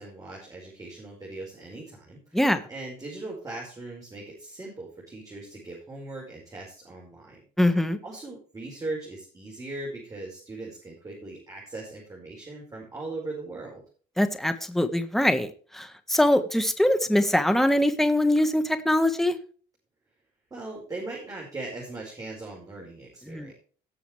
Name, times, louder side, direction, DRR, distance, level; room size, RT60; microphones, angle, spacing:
voice 1, 0.0-2.4 2.7-7.7 8.0-13.8 20.5-23.5, right 2 dB, 20° right, -3 dB, 5.0 m, -39 dB
voice 2, 7.6-8.0 14.2-19.4 23.3-23.5, left 1 dB, ahead, 10 dB, 1.5 m, -23 dB
18.0 x 7.1 x 3.3 m, 0.41 s
cardioid pair, 110°, 17 cm